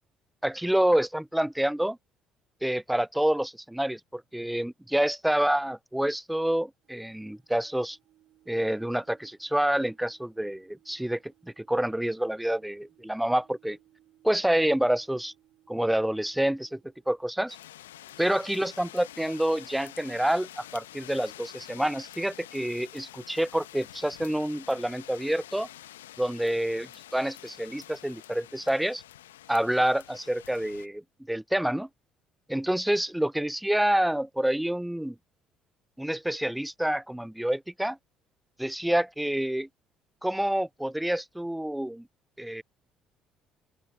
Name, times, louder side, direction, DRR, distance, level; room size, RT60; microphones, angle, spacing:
voice 1, 0.4-2.0 2.6-8.0 8.5-13.8 14.2-15.3 15.7-16.8 17.1-17.6 18.2-25.7 26.2-29.0 29.5-31.0 31.3-31.9 32.5-35.2 36.0-38.0 38.6-39.7 40.2-42.1 42.4-42.6, right 1 dB, 5° right, 0.5 m, -28 dB
sound 1, 6.8-18.3, right 14 dB, 60° right, 5.8 m, -65 dB
sound 2, 17.5-30.9, left 14 dB, 80° left, 1.2 m, -48 dB
open air
figure-of-eight pair, 50°, 0 cm